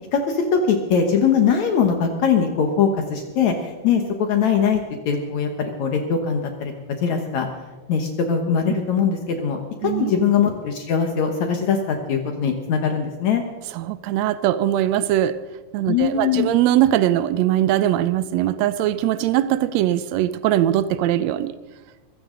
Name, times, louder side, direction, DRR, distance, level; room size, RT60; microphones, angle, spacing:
voice 1, 0.1-6.7 7.0-7.5 7.9-13.4 15.9-16.5, left 6 dB, 65° left, 4 dB, 2.4 m, -21 dB
voice 2, 13.7-15.4 15.7-21.5, right 12 dB, 90° right, 14 dB, 1.5 m, -21 dB
22.5 x 16.0 x 3.9 m, 1.2 s
omnidirectional pair, 3.8 m